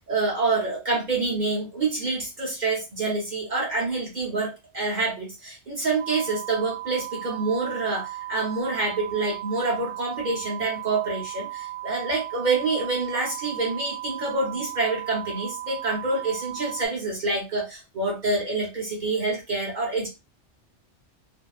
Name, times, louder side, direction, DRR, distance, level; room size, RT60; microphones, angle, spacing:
voice 1, 0.1-20.1, right 3 dB, 45° right, -3 dB, 0.8 m, -27 dB
sound 1, 6.0-16.9, right 16 dB, 75° right, 0.3 m, -36 dB
2.5 x 2.2 x 2.3 m, 0.26 s
omnidirectional pair, 1.2 m